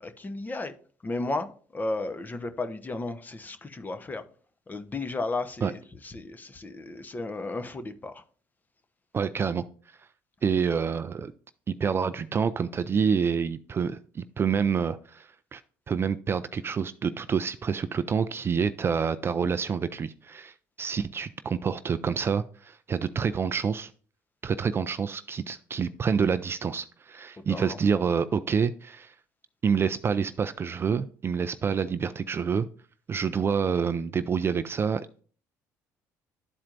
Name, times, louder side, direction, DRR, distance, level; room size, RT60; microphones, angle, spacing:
voice 1, 0.0-0.7 1.0-4.2 4.7-8.2 27.5-27.8, left 2 dB, 25° left, 0.9 m, -34 dB
voice 2, 9.1-9.6 10.4-11.3 11.7-15.6 15.9-23.9 24.4-29.1 29.6-32.7 33.1-35.2, right 6 dB, 35° right, 0.4 m, -27 dB
11.5 x 4.3 x 2.5 m
supercardioid pair, 80°, 7 cm